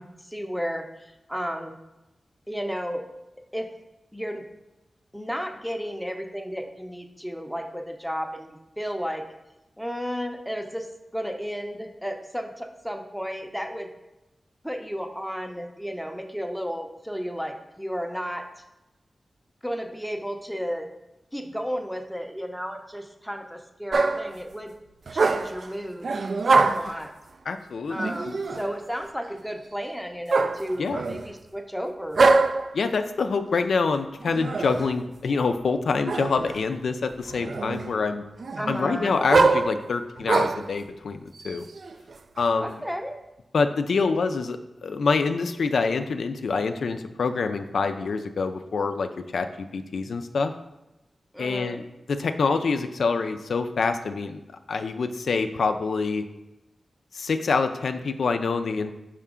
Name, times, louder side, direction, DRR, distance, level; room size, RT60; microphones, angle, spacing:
voice 1, 0.0-1.7 2.5-3.0 3.5-3.7 4.1-4.4 5.1-9.2 9.8-10.9 11.1-13.9 14.6-18.5 19.6-20.9 21.3-24.7 25.1-26.2 26.5-27.1 27.9-32.2 38.6-39.2 42.6-43.2 51.3-51.9, equal, ahead, 4 dB, 0.6 m, -33 dB
sound 1, 23.9-24.4 25.1-25.7 26.0-27.0 28.0-28.7 30.3-31.3 32.1-32.8 34.2-34.9 36.1-36.6 37.1-38.0 38.4-40.7 41.4-42.5, right 3 dB, 60° right, 0.3 m, -24 dB
voice 2, 27.5-28.1 30.8-31.0 32.7-38.2 38.7-41.7 42.4-42.8 43.5-50.5 51.4-51.8 52.1-54.4 54.7-56.2 57.1-58.9, left 4 dB, 90° left, 8 dB, 0.4 m, -26 dB
5.6 x 4.9 x 3.6 m, 0.98 s
wide cardioid pair, 115°, 0 cm